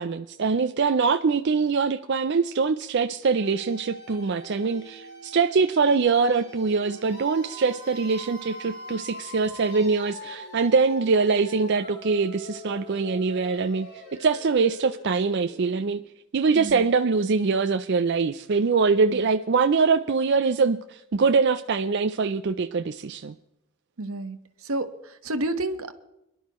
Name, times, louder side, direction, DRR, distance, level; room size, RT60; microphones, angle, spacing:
voice 1, 0.0-16.0 16.3-23.3, right 4 dB, 50° right, 0.4 m, -23 dB
sound 1, 3.2-16.1, left 1 dB, 50° left, 6.2 m, -43 dB
voice 2, 24.0-24.4 24.6-25.9, right 1 dB, 80° right, 1.2 m, -30 dB
23.5 x 11.5 x 3.1 m
head